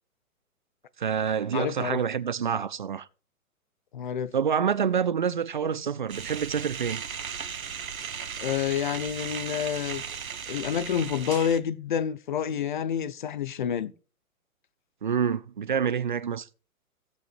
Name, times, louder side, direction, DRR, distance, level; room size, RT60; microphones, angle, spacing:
voice 1, 1.0-3.1 4.3-7.0 15.0-16.5, right 7 dB, 35° right, 0.4 m, -27 dB
voice 2, 1.5-2.0 3.9-4.3 8.4-10.0 10.5-13.9, left 8 dB, 35° left, 0.6 m, -28 dB
sound 1, 6.1-11.6, right 7 dB, 70° right, 1.0 m, -37 dB
16.0 x 8.0 x 2.5 m
figure-of-eight pair, 125°, 43 cm